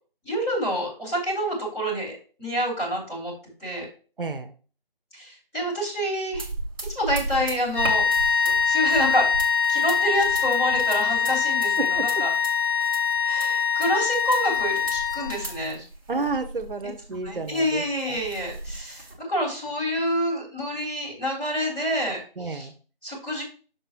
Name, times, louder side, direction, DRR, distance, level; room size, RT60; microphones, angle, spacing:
voice 1, 0.2-2.1 2.4-3.3 3.6-3.9 5.1-6.5 7.0-11.8 12.2-12.3 13.2-15.8 17.1-22.7 23.0-23.4, equal, 5° left, -10 dB, 2.0 m, -28 dB
voice 2, 4.2-4.5 11.8-12.2 15.1-15.3 16.1-18.2 22.4-22.7, right 3 dB, 65° right, 7 dB, 0.8 m, -31 dB
sound 1, 6.3-19.1, right 2 dB, 25° right, 1.0 m, -37 dB
sound 2, 7.7-15.6, left 6 dB, 60° left, 1.0 m, -23 dB
6.5 x 6.1 x 3.0 m, 0.39 s
figure-of-eight pair, 160°, 29 cm